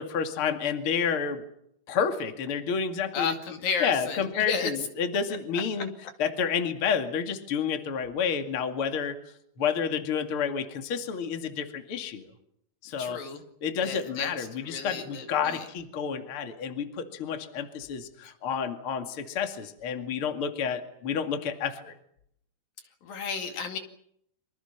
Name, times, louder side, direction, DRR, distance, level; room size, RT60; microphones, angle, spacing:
voice 1, 0.0-1.4 1.9-3.3 3.8-5.9 6.2-9.2 9.6-12.3 12.8-13.2 13.6-21.9, left 7 dB, 40° left, 6 dB, 2.7 m, -30 dB
voice 2, 3.1-4.7 13.0-13.4 13.8-15.7 23.0-23.8, left 6 dB, 70° left, 5 dB, 4.0 m, -32 dB
26.5 x 26.0 x 5.9 m, 0.71 s
omnidirectional pair, 4.3 m